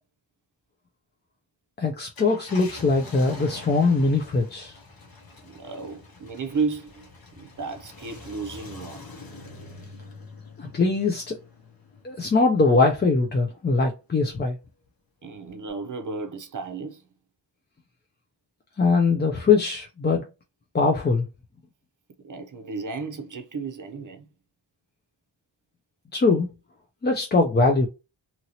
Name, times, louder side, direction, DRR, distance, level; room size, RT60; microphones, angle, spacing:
voice 1, 1.8-4.8 10.6-11.4 12.0-14.6 18.8-20.2 20.7-21.3 26.1-26.5 27.0-27.9, left 3 dB, 25° left, 0.3 m, -21 dB
Car, 2.0-12.8 13.3-13.4 15.5-15.7, left 3 dB, 50° left, 0.9 m, -45 dB
voice 2, 5.4-7.1 7.4-9.1 15.2-17.0 22.2-24.3, right 4 dB, 40° right, 0.6 m, -33 dB
2.8 x 2.7 x 2.8 m
wide cardioid pair, 135°, 47 cm